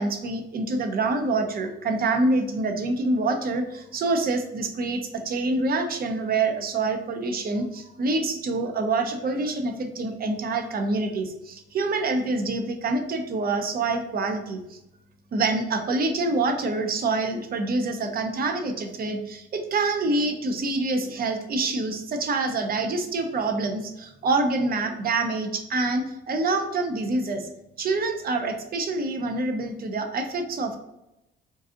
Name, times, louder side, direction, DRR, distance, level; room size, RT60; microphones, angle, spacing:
voice 1, 0.0-14.8 15.3-27.5 27.8-30.8, right 3 dB, 50° right, 5 dB, 0.6 m, -26 dB
3.9 x 2.5 x 2.5 m, 0.88 s
cardioid pair, 90°, 20 cm